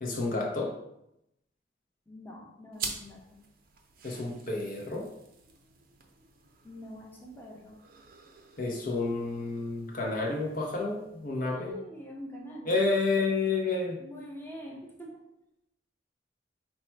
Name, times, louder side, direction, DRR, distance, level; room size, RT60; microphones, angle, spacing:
voice 1, 0.0-0.8 4.0-5.1 8.6-11.8 12.7-14.0, left 3 dB, 50° left, 0 dB, 0.6 m, -30 dB
voice 2, 2.1-3.4 6.6-7.8 11.5-12.8 14.0-15.2, equal, 10° left, -2 dB, 0.7 m, -44 dB
sound 1, 2.7-11.7, right 5 dB, 55° right, 0.6 m, -46 dB
4.4 x 2.1 x 4.4 m, 0.83 s
head